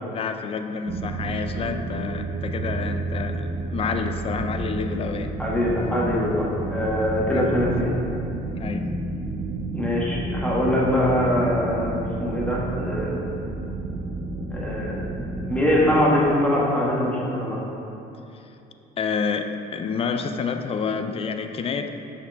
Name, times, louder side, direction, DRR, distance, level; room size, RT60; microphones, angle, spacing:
voice 1, 0.1-5.3 7.3-7.6 8.6-8.9 19.0-21.9, left 5 dB, 35° left, 7 dB, 0.4 m, -29 dB
sound 1, 0.9-16.0, right 2 dB, 35° right, 0.6 m, -31 dB
voice 2, 5.4-7.9 9.7-13.4 14.5-15.1 15.5-17.6, left 1 dB, 5° left, -5 dB, 1.4 m, -23 dB
6.7 x 5.2 x 3.5 m, 2.8 s
cardioid pair, 110°, 17 cm